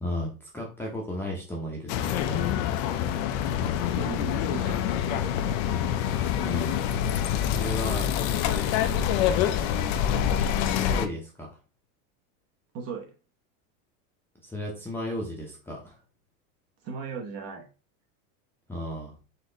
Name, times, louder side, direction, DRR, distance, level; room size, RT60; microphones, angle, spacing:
voice 1, 0.0-2.5 6.4-6.9 7.3-8.1 9.2-9.6 10.5-11.5 14.4-16.0 18.7-19.1, left 1 dB, 5° left, -3 dB, 0.7 m, -35 dB
sound 1, 1.9-11.1, left 9 dB, 45° left, 0.5 m, -26 dB
voice 2, 3.8-5.4 12.7-13.1 16.8-17.7, right 5 dB, 35° right, 2 dB, 0.9 m, -37 dB
4.2 x 3.0 x 3.8 m, 0.34 s
supercardioid pair, 150°, 44 cm